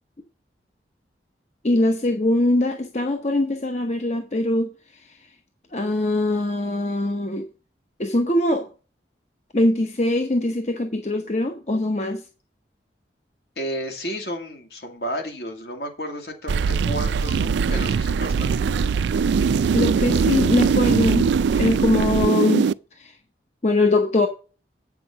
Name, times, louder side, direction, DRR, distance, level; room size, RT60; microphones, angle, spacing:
voice 1, 1.6-4.7 5.7-7.4 8.0-8.7 9.5-12.2 19.7-23.1 23.6-24.3, left 1 dB, 40° left, 0.9 m, -22 dB
voice 2, 13.6-18.8, equal, 65° left, 2.2 m, -32 dB
sound 1, 16.5-22.7, right 5 dB, 85° right, 0.3 m, -21 dB
8.5 x 6.1 x 5.7 m
head